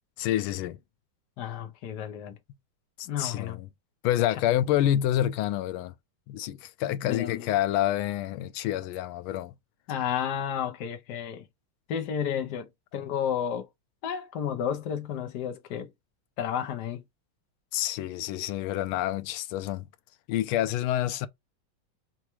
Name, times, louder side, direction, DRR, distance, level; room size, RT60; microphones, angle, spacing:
voice 1, 0.2-0.8 3.0-3.7 4.0-5.9 6.3-9.5 17.7-19.9 20.3-21.3, left 12 dB, 90° left, 1.4 m, -28 dB
voice 2, 1.4-2.4 3.1-3.6 7.0-7.5 9.9-11.4 11.9-13.7 14.0-15.9 16.4-17.0, left 8 dB, 65° left, 1.1 m, -32 dB
5.5 x 2.3 x 3.0 m
omnidirectional pair, 2.3 m